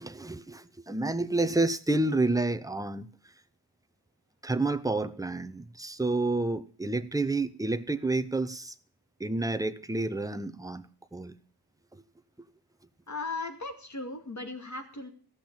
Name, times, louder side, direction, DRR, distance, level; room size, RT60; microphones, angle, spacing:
voice 1, 0.0-3.1 4.4-8.7 9.2-10.8 11.1-11.4 11.9-12.0, right 2 dB, 10° right, 0.7 m, -29 dB
voice 2, 13.1-15.1, left 3 dB, 45° left, 2.4 m, -37 dB
15.5 x 6.1 x 8.7 m
wide cardioid pair, 130°, 39 cm